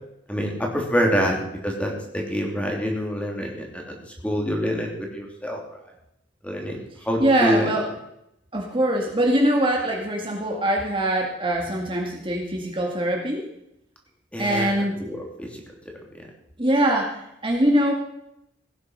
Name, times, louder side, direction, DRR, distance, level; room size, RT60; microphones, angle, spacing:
voice 1, 0.3-3.9 4.2-5.6 6.4-7.7 14.3-14.7 15.0-15.5, equal, 5° left, 0 dB, 3.0 m, -26 dB
voice 2, 7.2-7.9 8.5-13.4 14.4-15.0 16.6-17.9, right 1 dB, 25° right, 0 dB, 2.0 m, -23 dB
17.5 x 9.8 x 5.5 m, 0.81 s
head